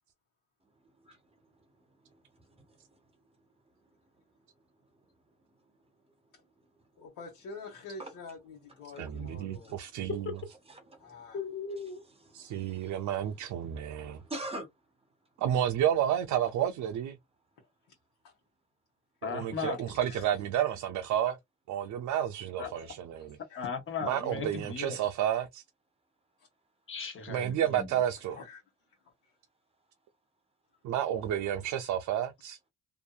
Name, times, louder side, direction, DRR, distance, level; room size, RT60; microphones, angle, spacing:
voice 1, 2.0-2.8 8.0-8.1 8.9-9.8 10.7-11.3 12.3-13.1 13.4-14.7, right 1 dB, 20° right, 1.2 m, -45 dB
voice 2, 7.0-9.9 11.0-11.4 17.6-17.7 18.2-18.3 20.0-20.2 21.2-21.4 22.6-23.7 24.9-25.1 28.3-28.6 29.0-29.3, left 4 dB, 85° left, 1.1 m, -47 dB
voice 3, 9.0-10.2 12.3-14.2 15.4-17.2 19.2-21.3 21.7-23.3 24.0-25.6 27.3-28.3 30.8-32.6, right 10 dB, 70° right, 0.5 m, -31 dB
voice 4, 11.3-12.0 19.2-19.8 22.6-22.7 23.5-25.0 26.9-28.0, left 5 dB, 45° left, 1.2 m, -37 dB
2.6 x 2.6 x 2.3 m
cardioid pair, 90°, 30 cm